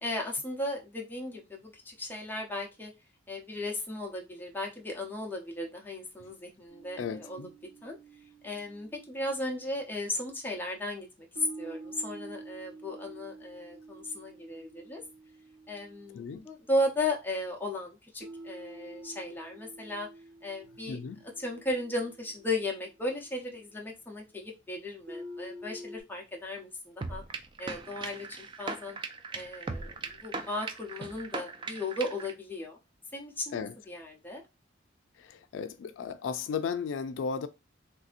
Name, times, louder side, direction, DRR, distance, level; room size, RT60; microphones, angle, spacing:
voice 1, 0.0-2.9 3.3-7.5 7.8-8.0 8.4-15.0 15.7-20.1 20.4-21.0 21.4-27.2 27.6-29.0 29.3-32.8 33.1-33.6 33.9-34.4, left 1 dB, 10° left, 0.7 m, -35 dB
sound 1, 6.7-10.0 11.4-16.8 18.2-23.7 25.1-26.0, right 1 dB, 80° right, 1.9 m, -48 dB
voice 2, 7.0-7.5 16.1-16.5 20.9-21.2 33.5-33.7 35.2-37.5, left 6 dB, 90° left, 0.3 m, -35 dB
sound 2, 27.0-32.3, right 3 dB, 25° right, 0.3 m, -39 dB
3.2 x 2.7 x 2.4 m
head